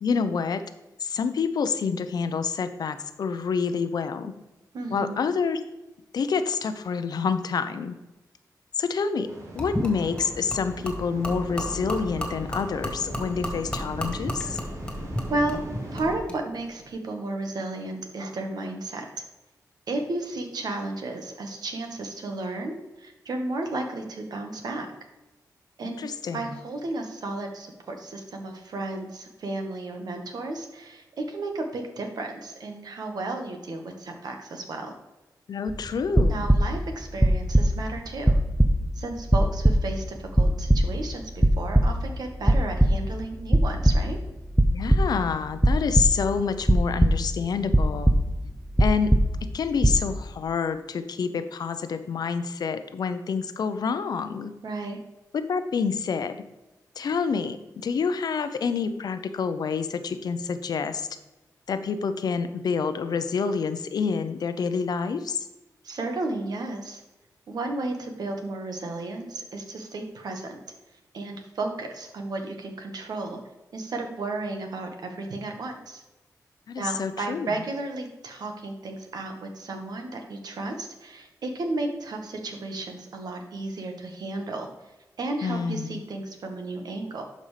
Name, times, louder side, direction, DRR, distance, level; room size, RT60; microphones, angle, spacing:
voice 1, 0.0-0.6 1.0-4.3 4.9-5.6 6.1-7.9 8.8-9.3 9.5-14.6 25.8-26.5 35.5-36.5 44.7-48.2 48.8-49.1 49.4-54.5 55.3-56.4 57.0-57.6 57.8-61.1 61.7-65.5 76.7-77.5 85.4-86.0, left 5 dB, 75° left, 10 dB, 0.6 m, -27 dB
voice 2, 4.7-5.2 15.3-15.6 15.9-19.1 19.9-24.9 25.8-26.0 26.3-34.9 36.2-38.4 38.9-44.2 54.6-55.0 65.8-67.0 67.5-70.6 71.1-73.4 73.7-76.0 76.8-84.7 85.2-87.2, right 2 dB, 75° right, 4 dB, 1.4 m, -33 dB
sound 1, 9.3-16.2, right 2 dB, 50° right, 1.9 m, -40 dB
Gurgling / Liquid, 9.6-16.4, equal, 10° left, 2.1 m, -34 dB
sound 2, 35.7-36.8 37.2-38.0 38.2-40.0 40.3-41.1 41.4-42.2 42.5-43.1 43.5-44.2 44.5-45.3 45.6-46.3 46.7-47.4 47.7-48.5 48.7-49.5 49.8-50.1, right 1 dB, 5° right, 0.5 m, -20 dB
11.5 x 5.3 x 3.3 m, 1.0 s
cardioid pair, 80°, 7 cm